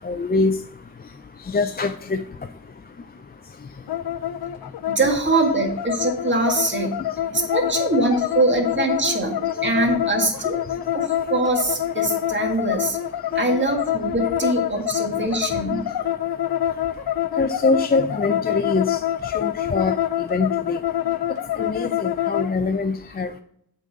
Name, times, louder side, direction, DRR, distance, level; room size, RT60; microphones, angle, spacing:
voice 1, 0.0-0.5 1.5-2.2 17.4-19.0 19.3-19.9 20.3-20.8 21.6-23.4, left 3 dB, 25° left, 7 dB, 0.4 m, -23 dB
sound 1, 3.9-22.5, left 11 dB, 85° left, 0.5 m, -26 dB
voice 2, 4.9-7.0 7.3-10.6 10.9-13.0 13.4-15.9, right 2 dB, 30° right, 1 dB, 1.8 m, -23 dB
8.2 x 4.0 x 6.3 m, 0.72 s
wide cardioid pair, 95°, 36 cm